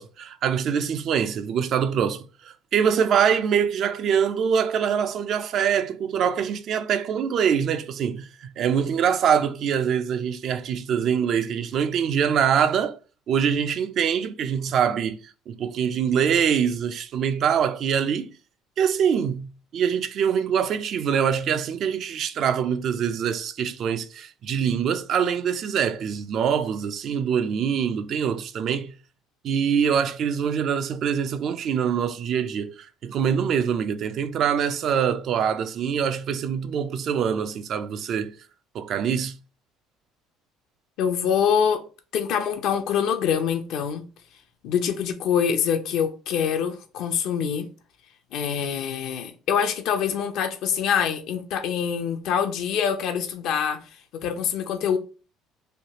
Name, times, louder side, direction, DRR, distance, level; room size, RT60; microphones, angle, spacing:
voice 1, 0.0-13.0 13.3-15.2 15.5-18.3 18.8-28.9 29.4-38.3 38.7-39.4, right 7 dB, 55° right, 0.3 m, -24 dB
voice 2, 41.0-41.8 42.1-44.0 44.6-47.7 48.3-53.8 54.1-55.0, left 7 dB, 65° left, 0.6 m, -25 dB
3.2 x 2.3 x 2.8 m
cardioid pair, 105°, 0 cm